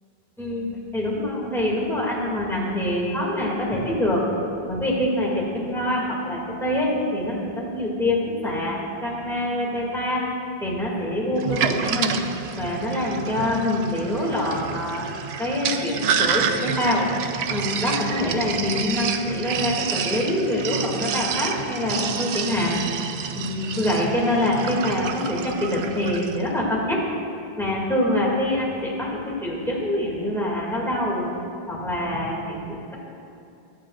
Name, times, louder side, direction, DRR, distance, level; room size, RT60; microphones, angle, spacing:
voice 1, 0.4-4.3 4.7-10.3 10.6-12.2 12.6-17.1 17.5-22.8 23.3-27.0 27.6-31.3 31.7-32.9, left 1 dB, ahead, -5 dB, 2.3 m, -25 dB
Sink (filling or washing), 11.4-26.4, right 7 dB, 90° right, 0.9 m, -29 dB
22.0 x 8.6 x 2.5 m, 2.6 s
omnidirectional pair, 1.0 m